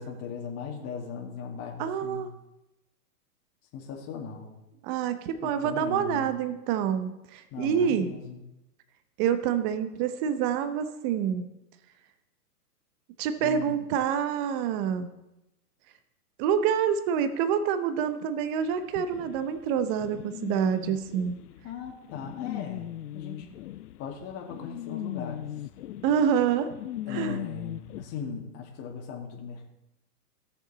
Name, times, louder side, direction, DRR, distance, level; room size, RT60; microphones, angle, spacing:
voice 1, 0.0-2.3 3.7-4.5 5.4-6.3 7.5-8.4 13.4-13.8 21.6-22.9 23.1-23.5 24.0-25.5 27.1-29.7, left 6 dB, 30° left, 1 dB, 2.0 m, -38 dB
voice 2, 1.8-2.3 4.8-8.1 9.2-11.5 13.2-15.1 16.4-21.4 26.0-26.7 27.1-27.4, right 8 dB, 30° right, 10 dB, 0.8 m, -27 dB
sound 1, 18.9-28.0, left 13 dB, 75° left, 0.6 m, -39 dB
16.0 x 6.9 x 4.1 m, 0.92 s
hypercardioid pair, 130°, 47 cm